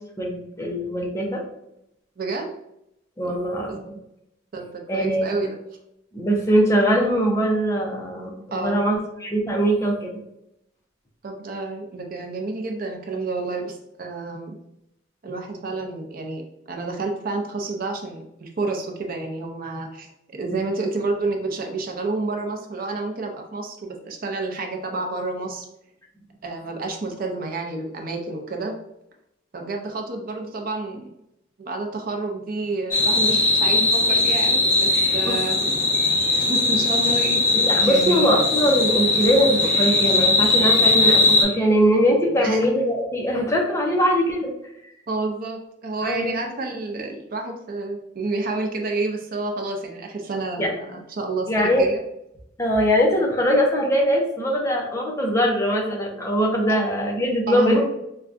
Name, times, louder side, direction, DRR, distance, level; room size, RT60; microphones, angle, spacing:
voice 1, 0.2-1.4 3.2-4.0 4.9-5.4 6.1-10.1 35.2-35.4 37.5-44.5 46.0-46.3 50.6-50.7 51.5-51.9 52.6-57.9, equal, 15° left, 0 dB, 0.5 m, -21 dB
voice 2, 2.2-2.5 3.2-3.4 3.7-3.8 4.5-5.5 8.5-8.8 11.2-14.5 15.2-25.7 26.4-28.7 29.5-31.1 31.6-35.6 36.3-37.4 37.9-38.4 42.4-42.6 45.1-52.0 57.5-57.8, right 3 dB, 45° right, 3 dB, 0.5 m, -29 dB
sound 1, 32.9-41.4, left 2 dB, 45° left, 1.1 m, -19 dB
4.5 x 2.2 x 2.5 m, 0.81 s
head